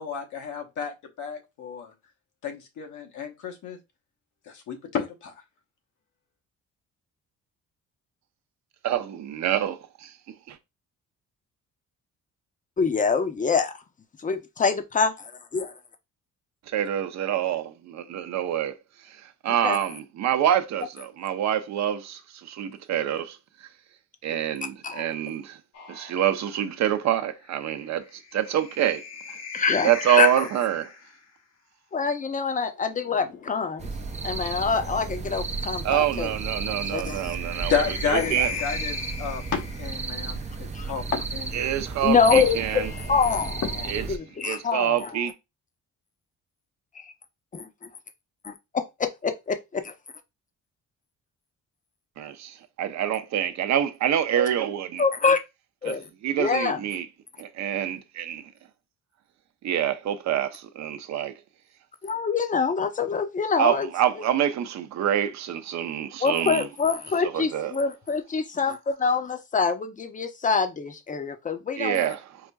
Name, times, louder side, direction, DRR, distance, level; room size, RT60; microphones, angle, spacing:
voice 1, 0.0-1.9 2.4-3.8 4.5-5.3 37.7-41.6 43.8-44.1, left 6 dB, 80° left, 1.0 m, -31 dB
voice 2, 8.8-10.1 10.5-10.6 16.7-18.8 19.0-23.7 24.2-25.6 25.9-29.4 29.8-30.9 35.8-38.5 41.5-42.9 43.9-44.1 44.4-45.3 52.2-55.0 55.8-56.0 56.2-57.1 57.4-58.4 59.6-61.3 63.6-66.7 67.3-67.7 71.8-72.4, right 10 dB, 65° right, 0.6 m, -26 dB
voice 3, 12.8-13.7 14.2-15.7 19.6-19.8 24.8-25.1 29.5-30.3 31.9-33.9 34.2-36.3 36.9-37.3 38.1-38.3 40.7-40.9 42.0-42.8 43.1-43.6 44.1-45.2 47.0-47.1 47.5-47.7 48.4-49.9 55.0-55.4 55.8-56.1 56.4-56.8 62.0-63.9 66.2-72.1, left 5 dB, 25° left, 0.6 m, -25 dB
sound 1, 25.7-31.3 32.6-35.6 37.0-40.5 41.7-44.6, left 6 dB, 55° left, 0.8 m, -41 dB
sound 2, 33.8-44.2, right 4 dB, 25° right, 0.5 m, -34 dB
4.8 x 2.5 x 2.3 m
cardioid pair, 90°, 30 cm